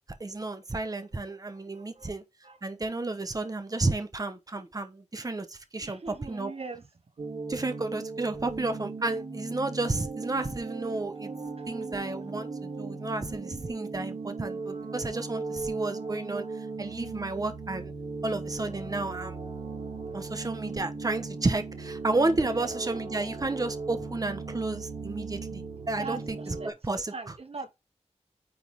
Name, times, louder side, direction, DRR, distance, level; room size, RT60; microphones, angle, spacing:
voice 1, 0.2-2.2 2.6-6.5 7.5-11.3 11.7-17.9 18.2-19.4 20.1-27.3, right 2 dB, 30° right, 1.1 m, -32 dB
voice 2, 1.3-2.1 2.4-2.6 5.8-6.8 11.6-11.7 22.4-22.7 26.0-27.7, right 4 dB, 55° right, 1.0 m, -41 dB
sound 1, 7.2-26.7, right 4 dB, 85° right, 3.1 m, -37 dB
9.5 x 3.7 x 4.8 m
wide cardioid pair, 100°, 12 cm